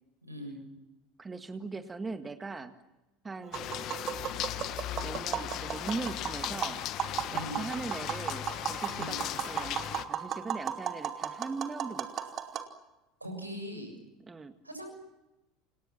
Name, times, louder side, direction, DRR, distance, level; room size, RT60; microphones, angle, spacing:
voice 1, 0.2-0.6 7.3-7.6 8.9-9.2 13.2-14.0 14.6-14.9, equal, 85° right, 6 dB, 7.0 m, -40 dB
voice 2, 1.2-2.8 3.2-3.9 4.9-6.8 7.3-9.8 10.1-12.1 14.3-14.5, right 4 dB, 20° right, 9 dB, 1.9 m, -40 dB
Tap, 3.4-12.7, right 9 dB, 40° right, 2.7 m, -36 dB
sound 1, 3.5-10.1, left 13 dB, 45° left, 1.5 m, -37 dB
29.5 x 28.0 x 6.0 m, 1.0 s
figure-of-eight pair, 70°, 0 cm